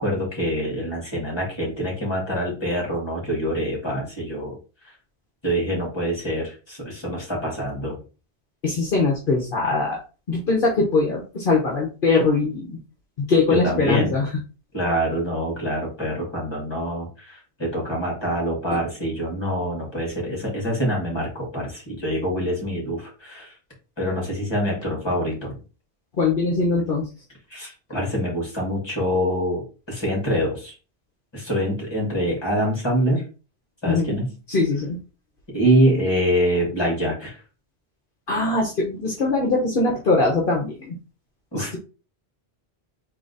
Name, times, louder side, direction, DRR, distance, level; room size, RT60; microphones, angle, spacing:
voice 1, 0.0-4.6 5.4-8.0 13.5-14.2 14.7-23.5 24.0-25.6 27.5-30.7 31.3-33.2 33.8-34.3 35.5-37.4 41.5-41.8, equal, 25° left, -2 dB, 2.2 m, -25 dB
voice 2, 8.6-10.0 10.3-12.8 13.2-14.3 26.2-27.0 33.9-34.2 34.5-35.0 38.3-40.9 41.5-41.8, left 3 dB, 60° left, -2 dB, 1.2 m, -22 dB
3.9 x 3.0 x 3.9 m, 0.33 s
omnidirectional pair, 1.1 m